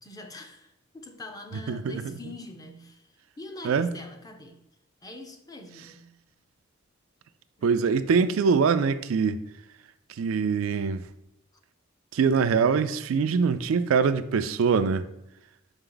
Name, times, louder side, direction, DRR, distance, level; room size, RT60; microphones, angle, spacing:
voice 1, 0.0-4.6 5.0-6.1 7.6-7.8, left 2 dB, 20° left, 0.6 m, -44 dB
voice 2, 1.7-2.1 3.6-3.9 7.6-9.4 10.2-11.0 12.1-15.0, right 5 dB, 80° right, 0.4 m, -23 dB
5.9 x 4.5 x 3.8 m
head